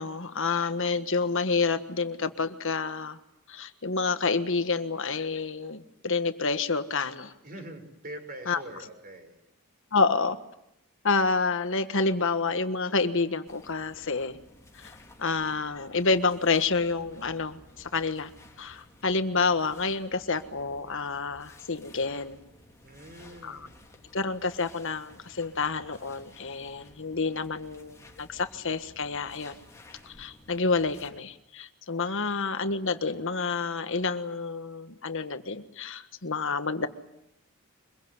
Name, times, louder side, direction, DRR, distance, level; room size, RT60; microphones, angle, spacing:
voice 1, 0.0-3.2 3.5-7.3 8.5-8.6 9.9-10.4 11.0-14.4 14.8-14.9 15.2-18.3 18.6-22.4 23.4-23.6 24.1-29.6 30.1-36.9, left 4 dB, 60° left, 10 dB, 1.5 m, -28 dB
voice 2, 7.4-9.4 22.8-23.8 32.0-32.4, right 1 dB, 40° right, 6 dB, 5.8 m, -44 dB
sound 1, 13.5-31.1, left 1 dB, 15° left, 3.8 m, -54 dB
25.0 x 22.5 x 9.8 m, 0.82 s
head